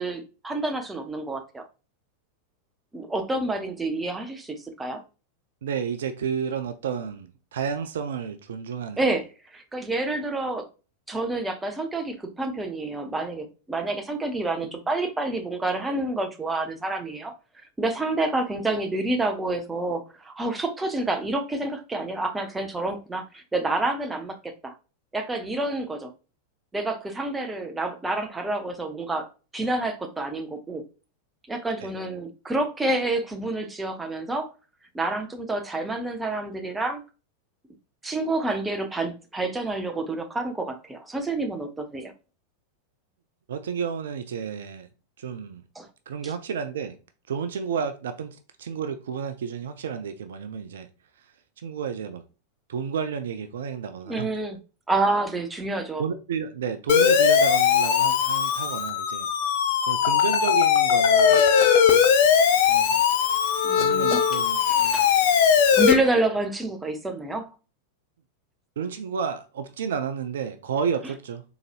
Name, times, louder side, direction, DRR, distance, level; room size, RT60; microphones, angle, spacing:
voice 1, 0.0-1.6 2.9-5.0 9.0-9.2 9.5-10.7 11.1-17.3 17.8-24.7 25.1-26.1 26.7-29.3 29.5-30.8 31.5-34.5 34.9-37.0 38.0-42.1 45.8-45.9 54.0-54.6 54.9-56.0 63.6-65.1 65.7-67.5, right 2 dB, 10° right, 0.6 m, -28 dB
voice 2, 5.6-9.1 31.8-31.9 43.5-44.9 45.2-45.6 46.1-47.0 47.3-50.9 51.6-52.2 52.7-54.3 56.0-59.3 59.8-61.5 62.7-63.0 63.7-65.1 68.8-71.4, right 7 dB, 60° right, 0.4 m, -31 dB
Siren, 56.9-65.9, left 8 dB, 50° left, 0.5 m, -20 dB
3.9 x 2.9 x 2.4 m
figure-of-eight pair, 90°, 0 cm